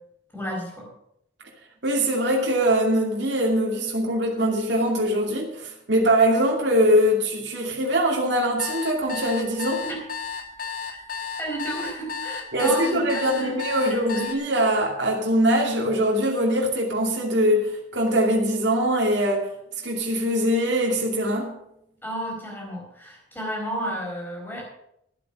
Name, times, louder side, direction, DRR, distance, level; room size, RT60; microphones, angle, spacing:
voice 1, 0.3-0.9 9.8-10.0 11.4-14.3 22.0-24.6, right 1 dB, 10° left, -2 dB, 4.5 m, -32 dB
voice 2, 1.8-9.8 12.5-19.5 19.8-21.5, equal, 65° right, -1 dB, 2.6 m, -22 dB
sound 1, 8.6-14.3, left 6 dB, 45° left, 1.5 m, -33 dB
13.0 x 8.4 x 6.3 m, 0.77 s
head